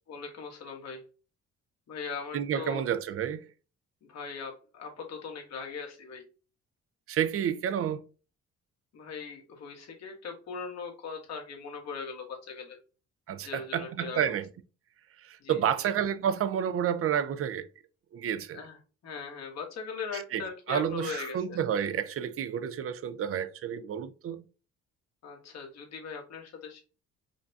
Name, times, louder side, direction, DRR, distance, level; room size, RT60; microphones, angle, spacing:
voice 1, 0.1-1.0 1.9-2.8 4.1-6.2 8.9-12.8 13.4-14.3 15.4-15.6 18.5-18.8 19.0-21.6 25.2-26.8, left 5 dB, 60° left, 1.3 m, -40 dB
voice 2, 2.3-3.5 7.1-8.0 13.3-14.5 15.2-17.7 18.1-18.6 20.1-20.4 20.7-24.4, right 9 dB, 50° right, 0.5 m, -30 dB
5.1 x 2.2 x 2.6 m
cardioid pair, 90°, 30 cm